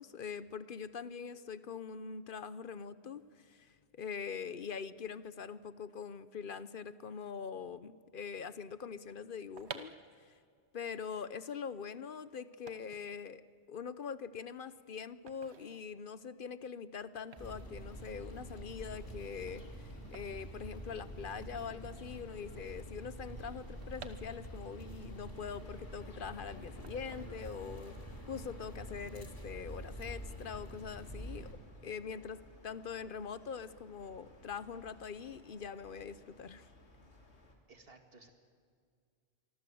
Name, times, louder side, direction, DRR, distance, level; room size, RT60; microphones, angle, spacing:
voice 1, 0.0-9.9 10.3-10.4 10.7-13.4 13.7-36.7, left 6 dB, 55° left, 15 dB, 0.9 m, -43 dB
sound 1, 9.5-21.4 21.7-21.8 22.0-24.8 25.2-26.3 26.8-27.8 28.2-28.5, right 6 dB, 75° right, 1.4 m, -54 dB
sound 2, 17.4-31.5, equal, 20° left, 3.2 m, -47 dB
sound 3, 17.7-37.5, left 1 dB, 80° left, 3.1 m, -59 dB
voice 2, 37.7-38.3, right 3 dB, 60° right, 5 dB, 2.4 m, -57 dB
25.5 x 24.5 x 7.8 m, 2.1 s
omnidirectional pair, 1.1 m